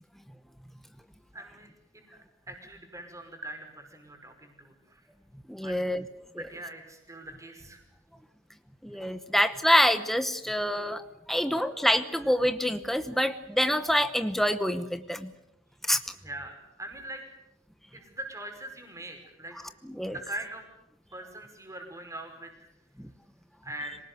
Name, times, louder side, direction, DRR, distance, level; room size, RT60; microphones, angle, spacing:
voice 1, 1.3-5.0 5.6-5.8 6.4-7.8 16.2-17.2 17.9-19.6 20.1-20.6 21.1-22.5 23.6-24.0, right 1 dB, 15° right, 4 dB, 5.4 m, -42 dB
voice 2, 5.5-6.0 6.3-6.4 8.8-15.3 15.9-16.0 19.8-20.2 23.0-23.1, equal, ahead, 10 dB, 0.9 m, -26 dB
26.0 x 18.5 x 9.4 m, 0.86 s
head